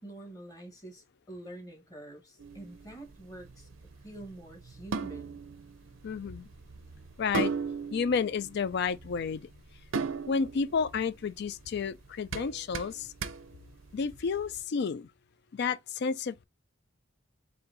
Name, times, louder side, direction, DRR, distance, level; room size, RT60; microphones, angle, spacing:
voice 1, 0.0-3.7 4.0-5.5, right 1 dB, 20° left, 1.3 m, -47 dB
sound 1, 2.4-14.5, right 5 dB, 80° right, 0.5 m, -38 dB
voice 2, 6.0-6.5 7.2-7.5 7.9-9.4 10.3-13.1 13.9-15.1 15.5-16.4, left 5 dB, 55° left, 0.4 m, -31 dB
4.3 x 2.7 x 3.8 m
head